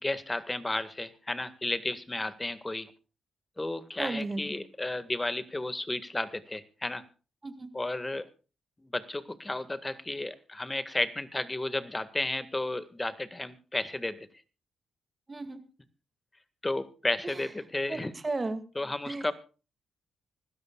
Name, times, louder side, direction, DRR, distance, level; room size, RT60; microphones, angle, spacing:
voice 1, 0.0-2.9 3.6-7.0 7.7-8.3 8.8-14.3 16.6-18.1 18.8-19.3, left 2 dB, 20° left, 12 dB, 1.8 m, -33 dB
voice 2, 4.0-4.6 7.4-7.7 15.3-15.6 17.2-17.4 17.9-18.6 19.1-19.3, right 3 dB, 30° right, 8 dB, 2.2 m, -34 dB
26.0 x 13.0 x 2.4 m, 0.35 s
hypercardioid pair, 40°, 0 cm